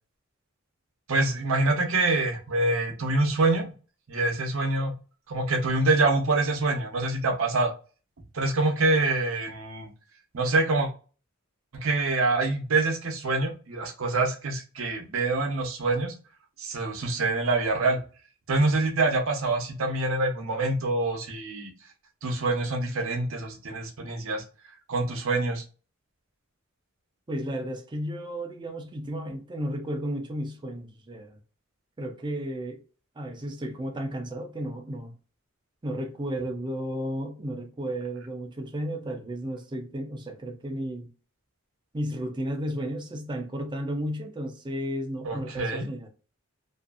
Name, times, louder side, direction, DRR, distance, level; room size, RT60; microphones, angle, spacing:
voice 1, 1.1-3.7 4.1-4.9 5.3-7.7 8.3-9.9 10.3-10.9 11.7-16.1 16.6-18.0 18.5-21.7 22.2-24.4 24.9-25.6 45.2-45.9, right 2 dB, 70° right, 0.7 m, -25 dB
voice 2, 27.3-31.4 32.0-32.8 33.2-35.1 35.8-41.1 41.9-46.1, equal, 20° right, 0.5 m, -33 dB
2.6 x 2.4 x 2.4 m
head